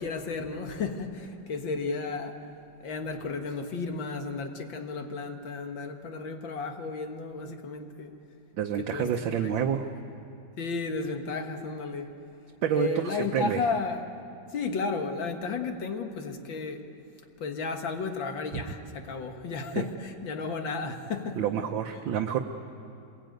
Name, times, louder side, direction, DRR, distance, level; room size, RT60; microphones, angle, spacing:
voice 1, 0.0-2.5 2.8-8.1 8.8-9.8 10.6-12.1 12.7-14.1 14.5-16.9 17.4-21.4, left 4 dB, 70° left, 2.3 m, -33 dB
voice 2, 8.6-9.9 12.6-13.6 18.5-18.6 19.7-19.9 21.4-22.4, right 8 dB, 75° right, 1.7 m, -28 dB
26.0 x 21.5 x 9.2 m
omnidirectional pair, 2.1 m